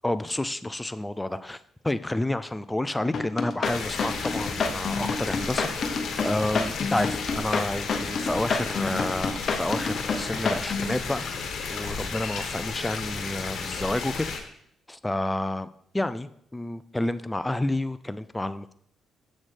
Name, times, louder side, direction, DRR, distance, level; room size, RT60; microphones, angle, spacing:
voice 1, 0.0-1.6 1.8-11.2 11.7-14.3 14.9-15.7 15.9-18.7, left 1 dB, 10° left, 0.3 m, -30 dB
sound 1, 3.1-10.9, left 4 dB, 50° left, 0.7 m, -28 dB
sound 2, 3.6-14.4, left 5 dB, 70° left, 1.2 m, -33 dB
7.4 x 6.2 x 3.3 m
cardioid pair, 90°, 0 cm